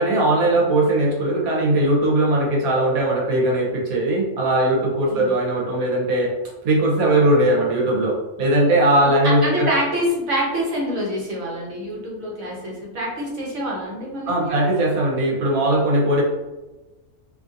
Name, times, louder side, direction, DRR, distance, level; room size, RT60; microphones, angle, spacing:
voice 1, 0.0-6.3 6.6-9.7 14.3-16.2, right 1 dB, 85° right, -2 dB, 1.3 m, -19 dB
voice 2, 9.2-14.6, equal, 65° right, -4 dB, 1.2 m, -26 dB
2.8 x 2.6 x 2.4 m, 1.1 s
omnidirectional pair, 1.5 m